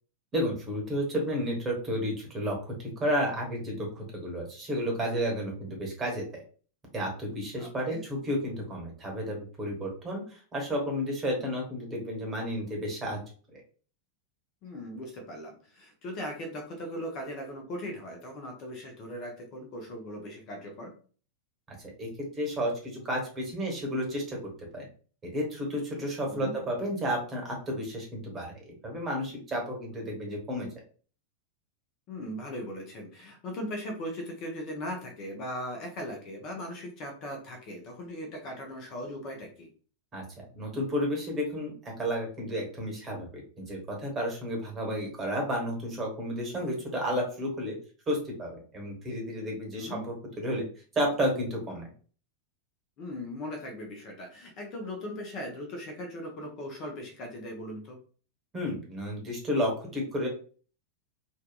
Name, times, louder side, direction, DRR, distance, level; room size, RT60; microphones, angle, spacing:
voice 1, 0.3-6.2 6.9-13.2 13.5-13.6 21.8-22.1 22.4-24.4 24.7-24.8 25.2-30.7 40.1-40.2 40.5-47.7 48.1-50.6 50.9-51.9 58.5-60.3, equal, 20° right, 0 dB, 1.0 m, -32 dB
voice 2, 7.6-8.0 14.6-20.9 26.3-26.5 32.1-39.7 49.8-50.0 53.0-58.0, equal, 40° left, 3 dB, 0.6 m, -39 dB
2.7 x 2.2 x 2.2 m, 0.40 s
figure-of-eight pair, 90°, 0 cm